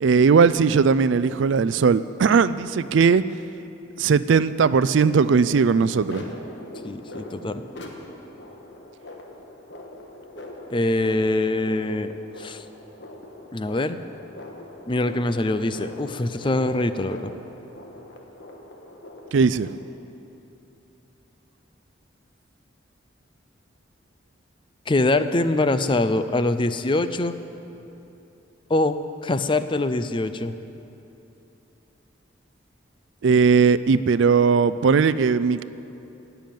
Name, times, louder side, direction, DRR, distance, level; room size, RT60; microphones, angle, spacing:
voice 1, 0.0-3.2 4.0-6.3 19.3-19.8 33.2-35.6, right 5 dB, 75° right, 15 dB, 0.4 m, -18 dB
sound 1, 4.6-19.7, left 1 dB, 60° left, 1.5 m, -42 dB
voice 2, 6.8-7.6 10.7-12.1 12.4-12.6 13.5-14.0 14.9-17.3 24.9-27.3 28.7-30.6, left 2 dB, 25° left, 11 dB, 0.5 m, -23 dB
17.0 x 7.0 x 9.2 m, 2.9 s
head